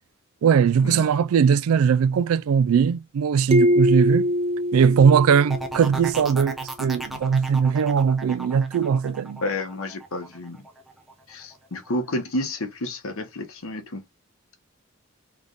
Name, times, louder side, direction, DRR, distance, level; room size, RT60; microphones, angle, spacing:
voice 1, 0.4-4.3 4.7-9.4, right 7 dB, 90° right, 0.3 m, -20 dB
sound 1, 3.5-6.1, equal, 30° right, 0.5 m, -23 dB
sound 2, 5.5-11.1 11.5-12.0, right 2 dB, ahead, 0.8 m, -36 dB
voice 2, 9.4-10.7 11.3-14.0, left 1 dB, 85° left, 1.1 m, -30 dB
3.5 x 3.2 x 3.8 m
head